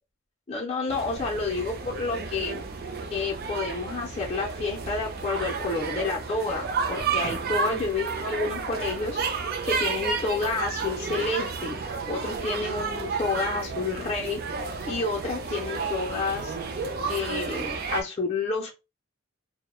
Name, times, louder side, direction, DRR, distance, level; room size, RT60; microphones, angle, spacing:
voice 1, 0.5-2.6 3.1-9.2 9.6-11.8 12.1-14.4 14.9-16.5 17.1-18.7, left 3 dB, 30° left, 0.4 m, -29 dB
sound 1, 0.9-18.0, right 4 dB, 45° right, 0.4 m, -32 dB
2.2 x 2.0 x 2.9 m
head